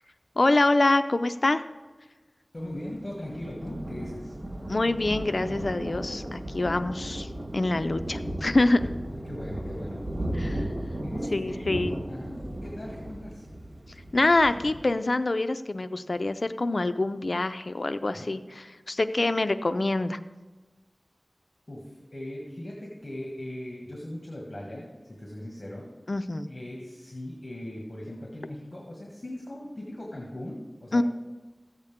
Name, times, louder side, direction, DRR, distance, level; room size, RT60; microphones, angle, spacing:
voice 1, 0.4-1.6 4.7-7.3 7.5-8.9 10.4-10.7 11.3-12.0 14.1-20.2 26.1-26.5 30.9-31.0, left 2 dB, 70° left, 11 dB, 0.5 m, -25 dB
voice 2, 2.5-4.4 9.2-10.1 11.0-11.7 12.1-13.5 18.1-18.3 21.7-25.9 26.5-31.0, left 1 dB, 50° left, -2 dB, 1.8 m, -39 dB
Thunder, 2.6-14.9, right 1 dB, 85° right, 1.4 m, -35 dB
14.0 x 8.0 x 3.6 m, 1.2 s
wide cardioid pair, 50°, 0 cm